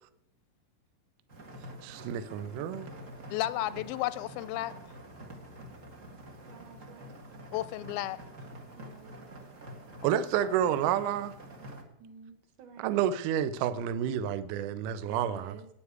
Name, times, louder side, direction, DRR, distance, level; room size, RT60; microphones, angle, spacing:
sound 1, 1.3-11.8, right 1 dB, 45° right, 1.0 m, -47 dB
voice 1, 1.8-2.9 10.0-11.3 12.8-15.6, right 10 dB, 75° right, 2.0 m, -29 dB
voice 2, 3.3-4.8 7.5-8.2, left 15 dB, 85° left, 2.4 m, -32 dB
voice 3, 6.5-7.2 8.8-9.5 12.0-13.0 15.0-15.7, right 6 dB, 60° right, 2.8 m, -51 dB
10.0 x 9.2 x 8.1 m
omnidirectional pair, 4.1 m